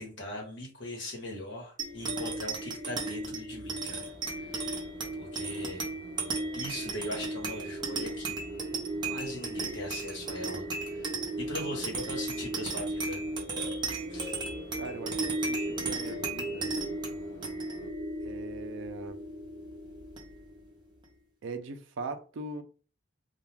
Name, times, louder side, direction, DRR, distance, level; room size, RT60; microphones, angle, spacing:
voice 1, 0.0-4.0 4.4-4.7 5.2-5.9 6.5-8.3 9.0-10.7 10.9-13.2 14.1-14.4, left 1 dB, 60° left, 1.1 m, -40 dB
sound 1, 1.8-20.6, right 2 dB, 20° right, 0.6 m, -35 dB
sound 2, 4.0-17.9, equal, 40° left, 1.5 m, -52 dB
voice 2, 14.8-16.8 18.2-19.2 21.4-22.6, right 3 dB, 65° right, 0.4 m, -41 dB
2.3 x 2.3 x 3.2 m
head